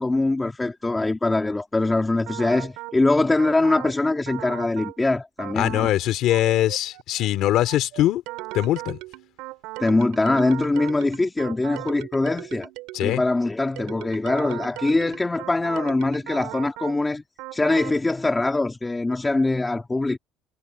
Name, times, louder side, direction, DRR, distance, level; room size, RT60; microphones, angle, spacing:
voice 1, 0.0-5.9 9.8-12.7 13.0-17.2 17.5-20.2, left 2 dB, 10° left, 3.5 m, -23 dB
sound 1, 2.3-3.0 3.4-4.0 4.3-5.0 5.4-6.0 6.3-13.3 13.8-17.0 17.4-18.0, right 20 dB, 75° right, 3.7 m, -38 dB
voice 2, 5.6-8.2 8.5-9.0 12.9-13.2, left 13 dB, 50° left, 3.0 m, -22 dB
cardioid pair, 175°, 0 cm